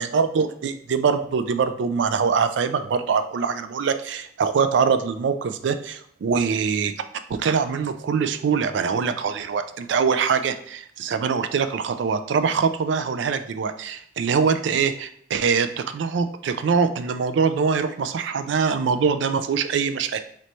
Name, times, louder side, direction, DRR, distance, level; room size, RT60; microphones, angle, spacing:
voice 1, 0.0-6.9 7.3-20.2, right 5 dB, 70° right, 10 dB, 0.3 m, -23 dB
3.1 x 3.1 x 4.1 m, 0.64 s
head